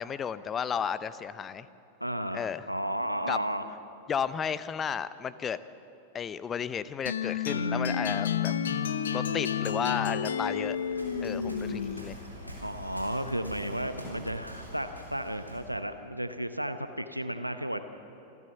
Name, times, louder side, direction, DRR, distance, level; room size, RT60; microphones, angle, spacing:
voice 1, 0.0-1.7 2.3-2.7 3.3-3.4 4.1-5.6 6.1-8.5 9.1-10.8 11.2-12.2, left 7 dB, 25° left, 16 dB, 0.7 m, -33 dB
voice 2, 2.0-3.7 12.6-17.8, right 1 dB, 90° right, 10 dB, 0.8 m, -33 dB
sound 1, 7.1-12.2, left 7 dB, 65° left, 0.8 m, -30 dB
Waves surf, 10.5-15.7, equal, 90° left, 3.7 m, -45 dB
27.0 x 14.0 x 7.2 m, 2.9 s
figure-of-eight pair, 90°, 0 cm